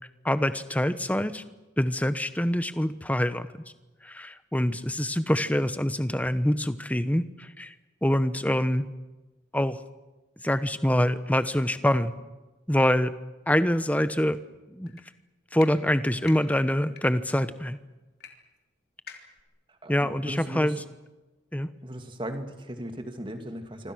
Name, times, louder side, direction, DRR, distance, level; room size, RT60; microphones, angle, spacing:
voice 1, 0.2-1.4 1.8-3.5 4.0-7.7 8.0-8.9 9.5-9.8 10.4-12.1 12.7-13.1 13.5-14.4 14.7-14.9 15.5-17.8 19.9-20.8 21.5-21.7, left 1 dB, 10° left, 12 dB, 1.1 m, -25 dB
sound 1, 14.9-15.0 15.5-15.7 16.2-16.4 16.9-17.0 18.2-18.3 18.6-18.7 19.1-19.4, left 6 dB, 55° left, 3.4 m, -44 dB
voice 2, 19.8-20.8 21.8-23.9, right 1 dB, 25° right, 6 dB, 2.5 m, -37 dB
26.0 x 26.0 x 6.4 m, 1.1 s
head